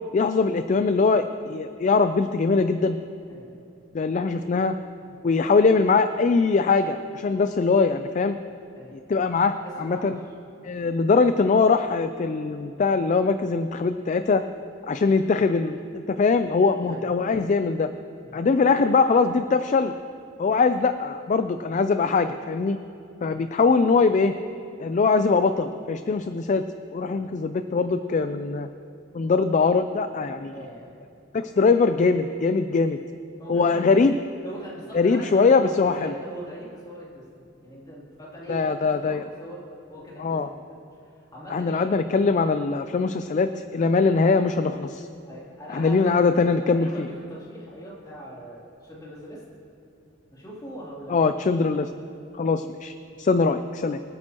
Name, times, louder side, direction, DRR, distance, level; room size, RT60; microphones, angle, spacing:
voice 1, 0.1-3.0 3.9-4.8 5.2-8.4 9.1-10.2 10.6-14.4 14.9-15.8 16.1-17.9 18.3-19.9 20.4-22.8 23.2-24.3 24.8-26.6 26.9-28.7 29.1-30.5 31.3-33.0 33.5-34.2 34.9-36.1 38.5-39.2 40.2-40.5 41.5-45.1 45.7-47.1 51.1-51.9 52.3-54.0, left 4 dB, 40° left, 10 dB, 0.3 m, -22 dB
voice 2, 3.3-3.6 5.0-5.1 8.8-9.0 9.6-10.3 16.7-17.1 18.2-18.4 23.3-23.5 27.1-27.3 30.5-31.0 33.4-34.0 34.4-39.6 39.9-41.9 45.2-49.4 50.3-51.6, right 1 dB, 20° left, -6 dB, 3.0 m, -41 dB
25.0 x 8.9 x 2.9 m, 2.6 s
head